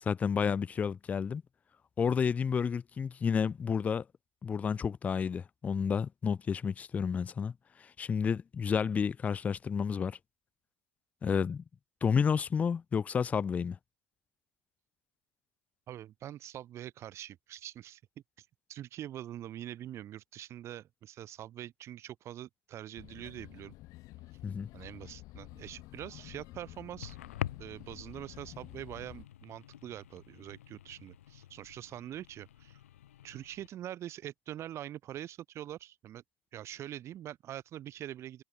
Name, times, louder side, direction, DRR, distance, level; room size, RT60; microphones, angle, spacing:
voice 1, 0.0-1.4 2.0-4.0 4.4-7.5 7.8-10.2 11.2-11.6 12.0-13.8 24.4-24.7, left 6 dB, 20° left, 0.4 m, -30 dB
voice 2, 15.9-18.0 18.4-23.7 24.7-27.2 27.6-32.8 33.2-36.2 36.5-38.4, right 12 dB, 40° right, 3.1 m, -44 dB
sound 1, 23.0-29.2, left 19 dB, 55° left, 4.6 m, -50 dB
sound 2, 25.5-33.7, left 12 dB, 90° left, 2.4 m, -47 dB
hypercardioid pair, 105°, 7 cm